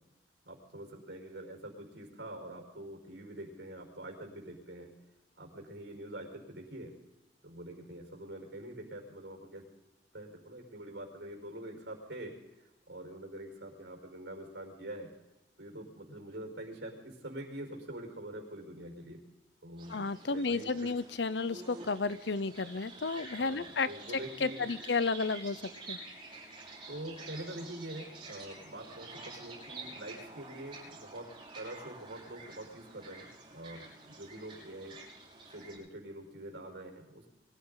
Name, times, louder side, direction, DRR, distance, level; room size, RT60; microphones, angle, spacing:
voice 1, 0.5-4.9 5.4-6.9 7.4-9.6 10.1-12.3 12.9-15.1 15.6-19.2 19.6-20.9 23.2-24.8 26.9-31.3 31.5-35.0 35.5-37.3, right 1 dB, 85° right, 2 dB, 5.3 m, -45 dB
sound 1, 19.8-35.8, right 2 dB, 30° right, 6.6 m, -49 dB
voice 2, 19.9-23.9 24.4-25.6 25.9-26.0, left 4 dB, 75° left, 15 dB, 0.8 m, -32 dB
23.5 x 15.0 x 4.0 m, 1.0 s
head